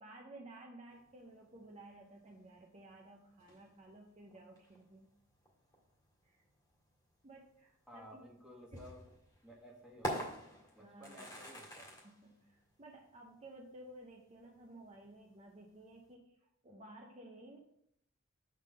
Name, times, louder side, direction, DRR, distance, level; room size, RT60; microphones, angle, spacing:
voice 1, 0.0-5.1 6.2-6.4 7.2-8.2 8.7-8.8 10.8-11.3 12.0-16.4 16.6-17.6, right 1 dB, 30° right, 0 dB, 0.7 m, -55 dB
sound 1, 0.9-16.1, equal, 20° left, 1.9 m, -49 dB
voice 2, 7.9-9.0 9.4-11.9, equal, 5° right, -2 dB, 1.4 m, -55 dB
6.7 x 3.7 x 6.3 m, 0.75 s
head